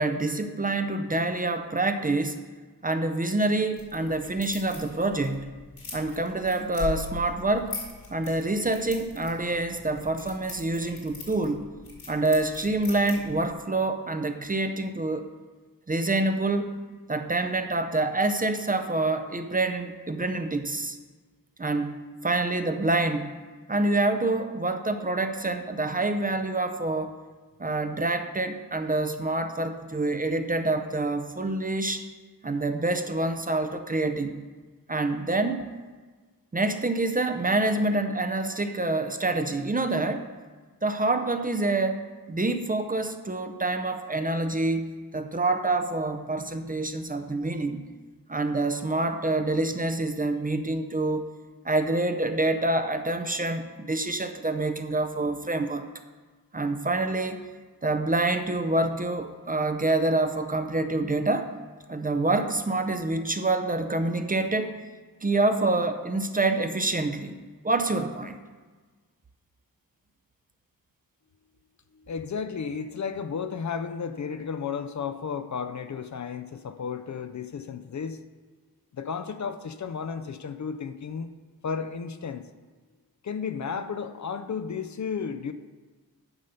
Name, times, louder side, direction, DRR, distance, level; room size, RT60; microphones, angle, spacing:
voice 1, 0.0-2.4 2.8-5.6 5.9-7.7 8.1-11.7 12.1-15.3 15.9-16.8 17.1-21.0 21.6-23.3 23.7-27.1 27.6-32.0 32.4-34.4 34.9-35.7 36.5-40.2 40.8-47.8 48.3-51.3 51.6-55.8 56.5-57.4 57.8-61.5 61.9-64.7 65.2-68.4, right 2 dB, 25° right, 7 dB, 0.5 m, -27 dB
sound 1, 3.8-13.5, left 5 dB, 75° left, 2.3 m, -41 dB
voice 2, 71.9-78.2 78.9-81.3 81.6-82.5 83.2-85.5, left 6 dB, 50° left, 10 dB, 0.5 m, -33 dB
9.7 x 5.3 x 5.6 m, 1.4 s
wide cardioid pair, 115°, 37 cm